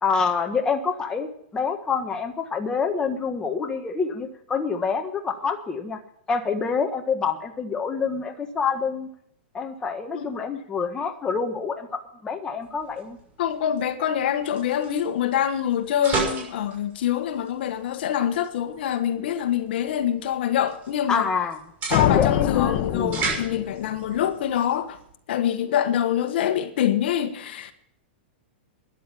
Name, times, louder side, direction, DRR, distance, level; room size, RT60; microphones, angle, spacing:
voice 1, 0.0-6.0 6.3-9.1 9.5-13.2 21.1-21.6 21.9-23.2, left 5 dB, 10° left, 1.5 m, -27 dB
sound 1, 12.6-25.1, right 4 dB, 25° right, 6.2 m, -36 dB
voice 2, 13.4-21.3 21.9-25.0 25.3-27.7, left 10 dB, 60° left, 1.4 m, -25 dB
sound 2, 21.9-24.2, left 12 dB, 40° left, 1.0 m, -25 dB
13.5 x 10.5 x 7.1 m
hypercardioid pair, 150°, 6 cm